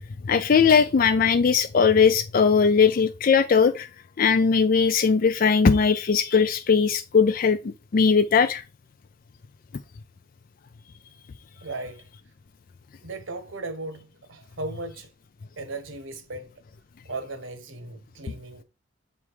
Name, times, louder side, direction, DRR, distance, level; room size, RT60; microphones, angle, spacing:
voice 1, 0.3-3.9 4.2-8.6, left 5 dB, 45° left, 0.4 m, -19 dB
voice 2, 11.6-12.1 13.0-15.1 15.6-16.5 17.1-18.6, right 2 dB, 75° right, 1.1 m, -36 dB
8.4 x 3.5 x 4.7 m
head